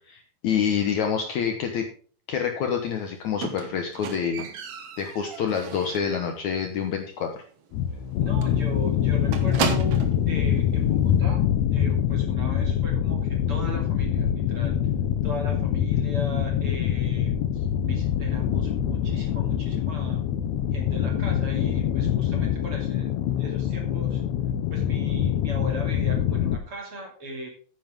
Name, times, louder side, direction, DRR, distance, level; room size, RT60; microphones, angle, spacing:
voice 1, 0.0-1.9 2.3-4.5 5.0-7.4, left 7 dB, 65° left, 4 dB, 2.0 m, -27 dB
Squeak, 3.4-6.2 6.5-6.9 7.2-7.3 7.7-7.8 8.0-8.2 8.4-10.3 11.1-11.2, right 7 dB, 55° right, 1.8 m, -33 dB
sound 1, 7.7-26.6, left 10 dB, 80° left, 1.6 m, -24 dB
voice 2, 8.2-10.0 10.3-14.8 15.2-20.2 20.7-23.1 23.4-24.2 24.7-27.5, right 1 dB, 40° right, 1 dB, 3.2 m, -38 dB
11.0 x 9.5 x 3.6 m, 0.43 s
omnidirectional pair, 4.3 m